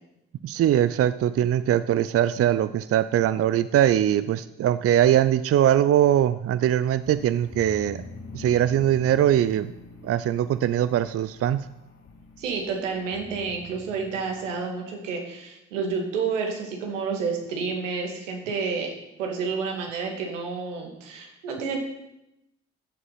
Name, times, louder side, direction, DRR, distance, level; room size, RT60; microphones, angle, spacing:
voice 1, 0.4-8.0 8.3-9.7 10.0-11.6, right 11 dB, 40° right, 14 dB, 0.6 m, -21 dB
sound 1, 7.0-14.7, left 4 dB, 40° left, 3.5 m, -44 dB
voice 2, 12.4-21.8, right 5 dB, 80° right, 2 dB, 2.2 m, -30 dB
13.5 x 8.1 x 5.7 m, 0.87 s
figure-of-eight pair, 45°, 36 cm